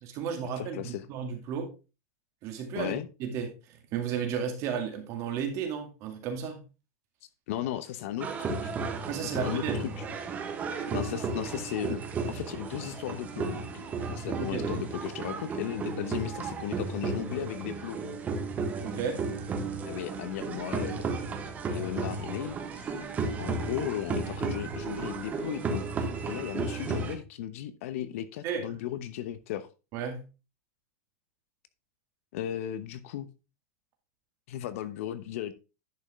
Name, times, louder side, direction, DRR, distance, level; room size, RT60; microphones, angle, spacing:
voice 1, 0.0-1.7 2.4-6.6 9.1-9.8 14.4-14.8 18.8-19.2 28.4-28.8 29.9-30.2, right 7 dB, 35° right, 2.2 m, -34 dB
voice 2, 0.6-1.0 2.8-3.1 7.5-8.7 9.2-9.9 10.9-12.0 12.3-13.7 14.1-18.0 19.9-21.0 21.7-22.9 23.4-25.8 26.3-29.7 32.3-33.3 34.5-35.5, left 11 dB, 60° left, 0.9 m, -36 dB
sound 1, 8.2-27.1, right 4 dB, 20° right, 1.2 m, -34 dB
11.0 x 5.4 x 3.6 m
supercardioid pair, 160°, 8 cm